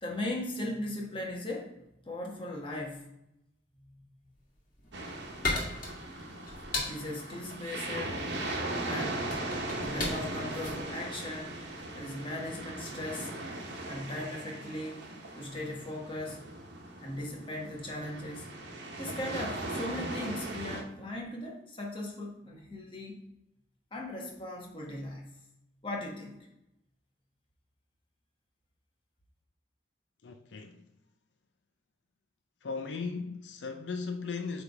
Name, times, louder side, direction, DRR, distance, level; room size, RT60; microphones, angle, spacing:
voice 1, 0.0-3.1 3.8-4.1 6.9-8.3 8.8-11.6 11.9-13.3 13.8-15.1 15.3-16.4 17.0-18.5 19.0-23.2 23.9-25.3 25.8-26.5, left 1 dB, 30° left, 1.3 m, -38 dB
sound 1, 4.5-12.0, left 3 dB, 50° left, 1.7 m, -37 dB
sound 2, 4.9-20.8, right 2 dB, 80° right, 1.1 m, -39 dB
voice 2, 30.2-30.8 32.6-34.6, left 4 dB, 90° left, 0.6 m, -37 dB
8.3 x 3.5 x 3.5 m
head